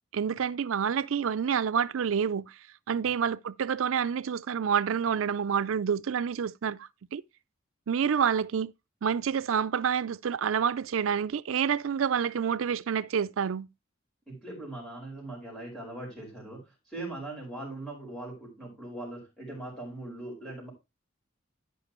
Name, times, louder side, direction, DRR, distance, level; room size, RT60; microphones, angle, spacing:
voice 1, 0.1-2.6 2.9-7.2 7.9-8.7 9.0-13.7, right 7 dB, 90° right, 0.4 m, -28 dB
voice 2, 14.3-20.7, right 2 dB, 5° left, 4.9 m, -40 dB
13.0 x 5.2 x 3.0 m
head